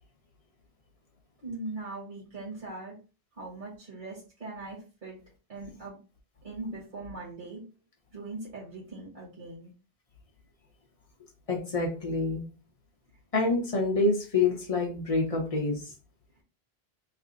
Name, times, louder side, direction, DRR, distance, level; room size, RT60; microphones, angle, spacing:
voice 1, 1.4-3.0 3.4-5.2 5.5-6.0 6.4-7.6 8.1-9.7, right 2 dB, 50° right, -5 dB, 1.3 m, -40 dB
voice 2, 11.5-12.4 13.3-15.8, left 3 dB, 35° left, 1 dB, 0.8 m, -27 dB
3.3 x 2.1 x 3.8 m, 0.34 s
omnidirectional pair, 1.1 m